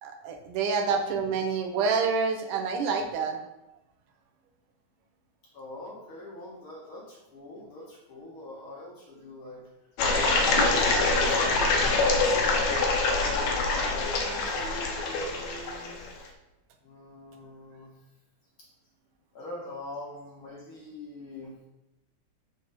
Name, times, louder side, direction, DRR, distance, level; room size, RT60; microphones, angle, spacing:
voice 1, 0.0-3.4, right 5 dB, 85° right, 4 dB, 2.5 m, -27 dB
voice 2, 5.5-9.6 10.2-16.0 16.8-17.9 19.3-21.5, left 2 dB, 50° left, -4 dB, 2.0 m, -42 dB
sound 1, 10.0-16.1, left 3 dB, 70° left, 2.1 m, -25 dB
6.3 x 6.3 x 4.2 m, 0.92 s
omnidirectional pair, 3.6 m